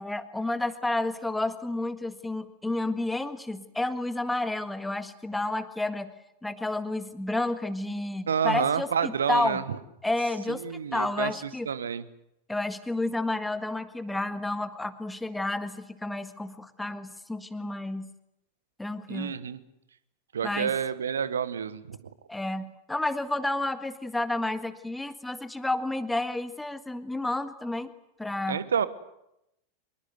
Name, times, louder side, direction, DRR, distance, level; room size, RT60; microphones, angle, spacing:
voice 1, 0.0-6.1 6.4-9.6 10.0-11.7 12.5-18.1 18.8-19.3 20.4-20.7 22.3-27.9 28.2-28.6, left 2 dB, 5° left, 11 dB, 1.7 m, -30 dB
voice 2, 8.3-9.6 10.5-11.3 11.6-12.0 19.1-19.6 20.3-22.0 28.5-28.9, right 7 dB, 70° right, 15 dB, 1.3 m, -29 dB
25.5 x 22.0 x 8.1 m, 0.86 s
figure-of-eight pair, 90°, 0 cm